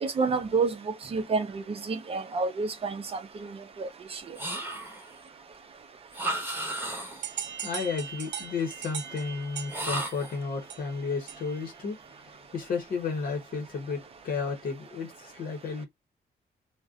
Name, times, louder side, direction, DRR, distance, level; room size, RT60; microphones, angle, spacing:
voice 1, 0.0-4.2, right 4 dB, 35° right, 0.6 m, -30 dB
sound 1, 4.4-5.1 6.1-7.3 9.7-10.4, right 1 dB, 10° right, 0.9 m, -34 dB
sound 2, 7.2-11.7, right 8 dB, 90° right, 0.6 m, -40 dB
voice 2, 7.3-12.0 12.3-15.8, left 5 dB, 55° left, 0.9 m, -33 dB
2.5 x 2.1 x 3.6 m
wide cardioid pair, 175°, 18 cm